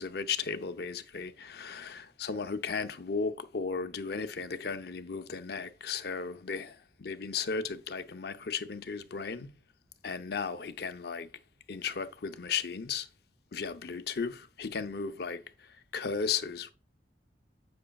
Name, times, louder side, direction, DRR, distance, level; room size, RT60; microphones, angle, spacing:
voice 1, 0.0-9.5 10.0-11.3 11.7-13.1 13.5-15.4 15.9-16.7, left 5 dB, 60° left, 0.6 m, -35 dB
8.6 x 5.9 x 2.3 m
head